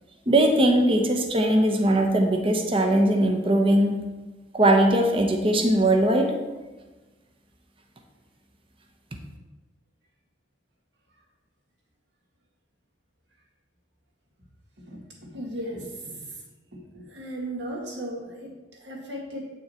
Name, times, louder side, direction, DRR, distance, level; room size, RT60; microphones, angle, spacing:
voice 1, 0.3-4.0 4.5-6.3, right 1 dB, 30° right, 3 dB, 0.8 m, -20 dB
voice 2, 14.9-16.4 16.7-19.5, right 1 dB, 65° right, 0 dB, 1.9 m, -36 dB
8.1 x 6.3 x 4.4 m, 1.2 s
head